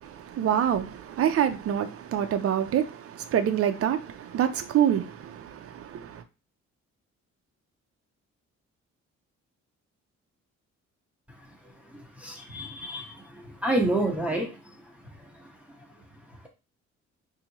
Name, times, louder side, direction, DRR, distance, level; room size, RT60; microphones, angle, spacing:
voice 1, 0.0-6.2, right 9 dB, 50° right, 0.6 m, -26 dB
voice 2, 11.8-14.6 15.0-15.5, right 1 dB, 5° right, 1.0 m, -30 dB
4.0 x 2.8 x 2.9 m
cardioid pair, 105°, 29 cm